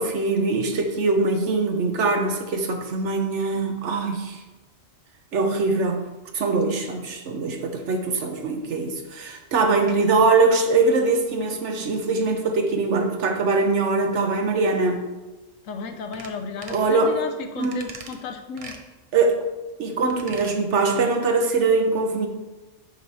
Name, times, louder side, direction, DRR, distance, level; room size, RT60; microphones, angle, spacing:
voice 1, 0.0-4.4 5.3-6.1 6.3-15.0 16.7-17.1 17.6-17.9 19.1-19.4 19.8-22.3, right 3 dB, 65° right, 4 dB, 1.1 m, -22 dB
voice 2, 15.6-18.8 19.9-20.0 20.3-20.4, left 5 dB, 80° left, 7 dB, 1.1 m, -34 dB
sound 1, 16.1-16.3 16.6-16.9 17.6-18.2 18.6-18.8 20.0-20.6 20.9-21.0, right 4 dB, 40° right, 0.5 m, -41 dB
8.1 x 3.1 x 5.5 m, 1.2 s
omnidirectional pair, 1.3 m